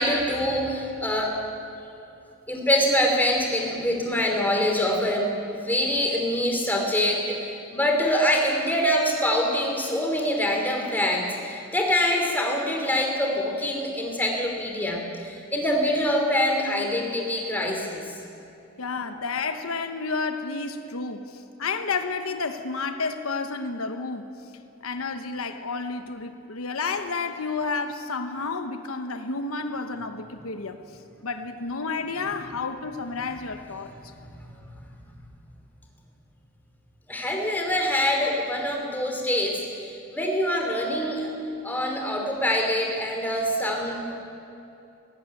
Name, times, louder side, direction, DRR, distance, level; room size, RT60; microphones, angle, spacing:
voice 1, 0.0-1.4 2.5-18.1 37.1-41.3 41.6-44.1, left 1 dB, 10° left, 1 dB, 2.8 m, -25 dB
voice 2, 18.8-24.3 24.8-30.8 31.2-33.9, left 4 dB, 85° left, 8 dB, 1.1 m, -31 dB
18.0 x 16.5 x 9.1 m, 2.8 s
head